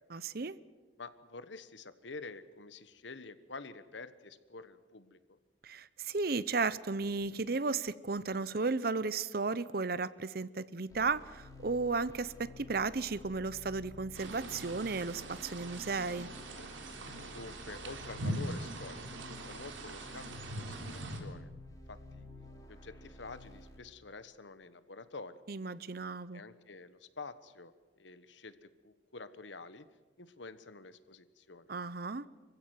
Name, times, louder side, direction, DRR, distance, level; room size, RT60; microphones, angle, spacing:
voice 1, 0.1-0.6 5.6-16.3 25.5-26.4 31.7-32.3, right 4 dB, 50° right, 18 dB, 0.7 m, -34 dB
voice 2, 1.0-5.4 17.3-19.0 19.3-21.5 21.9-22.2 22.7-25.4 26.3-29.9 30.2-31.7, left 3 dB, 75° left, 13 dB, 1.3 m, -48 dB
sound 1, 10.9-23.8, left 2 dB, 20° left, 4.3 m, -52 dB
sound 2, 14.1-21.2, right 1 dB, 85° right, 3.5 m, -42 dB
26.0 x 15.5 x 9.5 m, 1.3 s
head